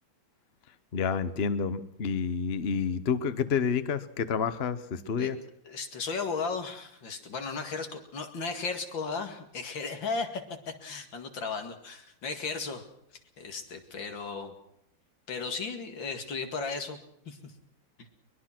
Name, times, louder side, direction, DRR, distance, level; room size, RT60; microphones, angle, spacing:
voice 1, 0.9-5.4, left 6 dB, 40° left, 13 dB, 1.0 m, -29 dB
voice 2, 5.6-12.9 13.4-14.5 15.3-17.0 17.3-17.5 18.0-18.1, left 4 dB, 75° left, 6 dB, 3.0 m, -35 dB
22.5 x 21.5 x 6.0 m, 0.74 s
omnidirectional pair, 2.1 m